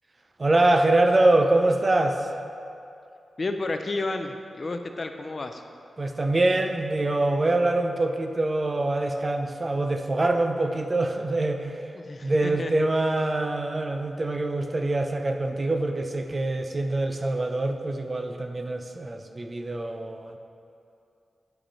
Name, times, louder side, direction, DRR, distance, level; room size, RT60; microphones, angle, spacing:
voice 1, 0.4-2.3 6.0-11.8 12.2-20.4, right 2 dB, 30° right, 5 dB, 0.5 m, -24 dB
voice 2, 3.4-5.6 11.9-12.9, left 2 dB, 40° left, 6 dB, 0.4 m, -31 dB
9.6 x 5.0 x 4.4 m, 2.6 s
wide cardioid pair, 125°, 0 cm